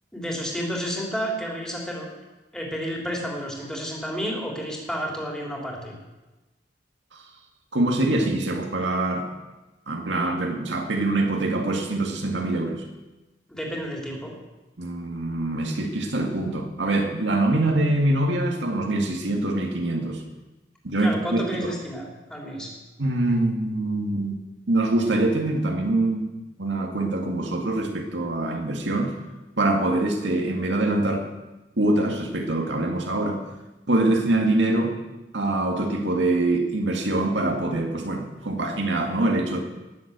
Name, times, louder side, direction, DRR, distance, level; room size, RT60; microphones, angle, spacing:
voice 1, 0.1-2.1 2.5-5.9 13.5-14.3 21.0-22.7, equal, 5° left, -1 dB, 3.3 m, -31 dB
voice 2, 7.7-9.3 9.9-12.8 14.8-20.2 20.8-21.7 23.0-26.3 26.6-29.1 29.6-31.3 31.8-33.4 33.9-35.0 35.3-39.6, right 2 dB, 75° right, 3 dB, 2.0 m, -24 dB
19.0 x 7.5 x 8.1 m, 1.1 s
head